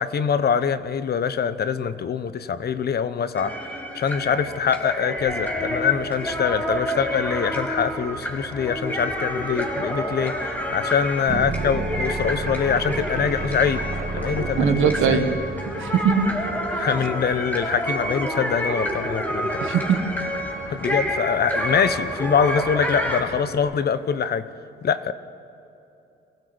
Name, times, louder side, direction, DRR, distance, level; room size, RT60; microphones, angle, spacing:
voice 1, 0.0-3.5 3.9-13.8 14.1-15.3 16.7-19.6 20.7-24.5 24.8-25.1, left 7 dB, 55° left, 13 dB, 1.0 m, -24 dB
Xaanxi singers, 3.3-23.2, equal, 10° left, 3.2 m, -29 dB
sound 1, 5.1-23.6, equal, 90° left, 5.8 m, -43 dB
sound 2, 11.3-16.3, right 3 dB, 45° right, 2.3 m, -30 dB
voice 2, 14.6-15.3 15.7-16.3 19.6-20.0, right 7 dB, 85° right, 8 dB, 1.6 m, -21 dB
24.0 x 15.5 x 7.9 m, 2.9 s
cardioid pair, 90°, 20 cm